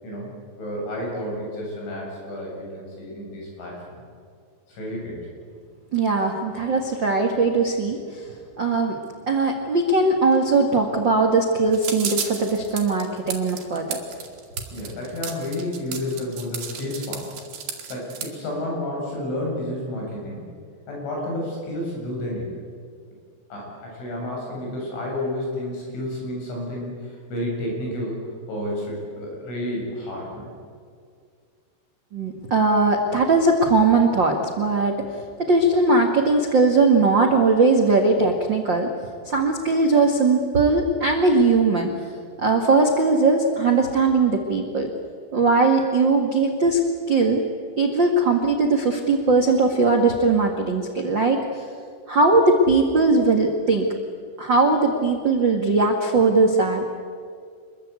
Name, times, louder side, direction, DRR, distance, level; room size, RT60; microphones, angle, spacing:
voice 1, 0.0-4.0 4.7-5.3 14.7-17.3 17.9-20.5 20.9-22.5 23.5-28.2 28.5-30.5, left 1 dB, 80° left, -2 dB, 10.0 m, -31 dB
voice 2, 5.9-8.2 8.6-9.0 9.3-14.0 32.1-35.0 35.5-38.9 39.2-41.9 42.4-44.9 45.3-46.8 47.1-47.4 47.8-51.6 52.1-53.9 54.4-56.9, right 3 dB, 75° right, 2 dB, 1.0 m, -19 dB
sound 1, 11.7-18.3, right 7 dB, 55° right, 3.9 m, -33 dB
27.0 x 22.5 x 8.3 m, 2.2 s
omnidirectional pair, 5.4 m